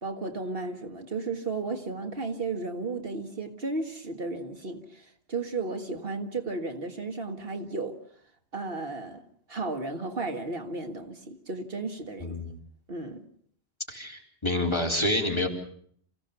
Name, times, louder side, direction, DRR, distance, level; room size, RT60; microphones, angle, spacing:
voice 1, 0.0-7.9 8.5-9.2 9.5-12.4 12.9-13.2, right 3 dB, 60° right, 5 dB, 1.9 m, -34 dB
voice 2, 13.9-15.5, left 1 dB, 25° left, 0 dB, 4.0 m, -28 dB
28.0 x 16.5 x 6.9 m, 0.63 s
omnidirectional pair, 1.1 m